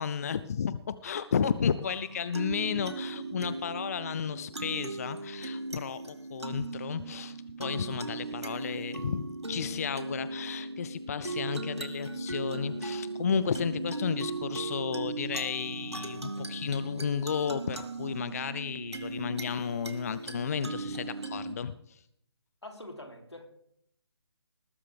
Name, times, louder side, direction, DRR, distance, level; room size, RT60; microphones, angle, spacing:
voice 1, 0.0-22.0, left 7 dB, 35° left, 15 dB, 0.5 m, -33 dB
sound 1, 1.8-21.5, right 2 dB, 85° right, 1.9 m, -38 dB
voice 2, 8.2-8.7 22.6-23.5, left 1 dB, 85° left, 4 dB, 3.0 m, -46 dB
19.5 x 12.0 x 3.4 m, 0.71 s
figure-of-eight pair, 145°, 14 cm